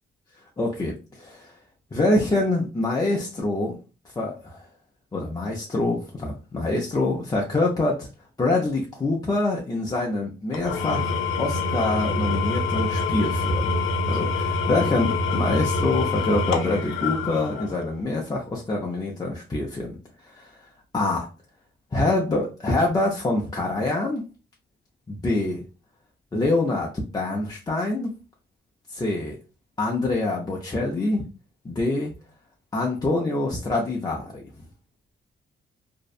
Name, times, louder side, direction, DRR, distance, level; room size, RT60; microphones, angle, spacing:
voice 1, 0.6-1.5 1.9-3.8 4.2-4.6 5.1-8.1 8.4-13.8 14.1-20.0 20.2-20.5 20.9-21.3 21.9-24.2 25.1-25.6 26.3-28.1 28.9-29.4 29.8-31.2 31.6-32.1 32.7-34.4, left 2 dB, 20° left, -2 dB, 0.4 m, -25 dB
Engine / Tools, 10.5-18.0, left 3 dB, 75° left, 0.5 m, -25 dB
2.6 x 2.1 x 2.4 m, 0.33 s
cardioid pair, 120°, 20 cm